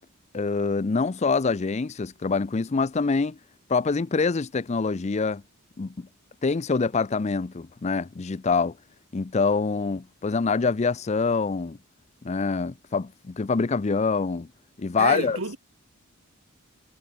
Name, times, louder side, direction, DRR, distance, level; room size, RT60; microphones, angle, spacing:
voice 1, 0.3-3.4 3.7-5.4 5.8-6.1 6.4-8.7 9.1-11.8 12.2-14.5 14.8-15.4, left 4 dB, 30° left, 0.5 m, -25 dB
voice 2, 15.0-15.6, right 4 dB, 70° right, 1.4 m, -29 dB
head